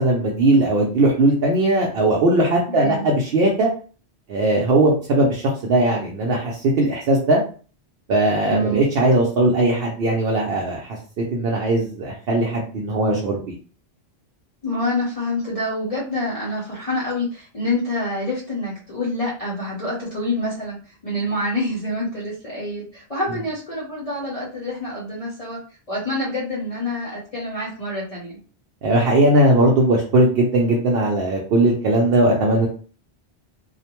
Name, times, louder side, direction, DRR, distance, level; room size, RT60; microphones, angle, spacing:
voice 1, 0.0-3.7 4.3-7.4 8.1-13.5 28.8-32.7, right 1 dB, 70° right, -2 dB, 0.8 m, -19 dB
voice 2, 2.7-3.1 8.5-8.8 14.6-20.8 21.0-25.6 25.9-28.4, left 1 dB, 40° left, -7 dB, 0.7 m, -26 dB
2.5 x 2.1 x 2.8 m, 0.39 s
omnidirectional pair, 1.1 m